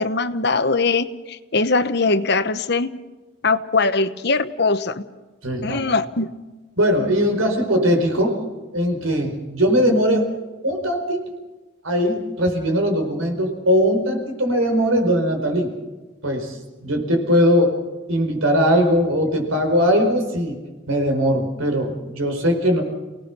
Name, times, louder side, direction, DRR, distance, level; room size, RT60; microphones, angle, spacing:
voice 1, 0.0-2.9 3.4-5.0 5.6-6.3, left 3 dB, 50° left, 11 dB, 1.0 m, -21 dB
voice 2, 5.4-5.8 6.8-8.4 8.7-10.3 10.6-11.2 11.8-15.7 16.2-16.6 16.8-17.8 18.1-20.6 20.9-22.8, equal, 85° right, 5 dB, 4.8 m, -20 dB
29.5 x 18.0 x 6.0 m, 1.2 s
head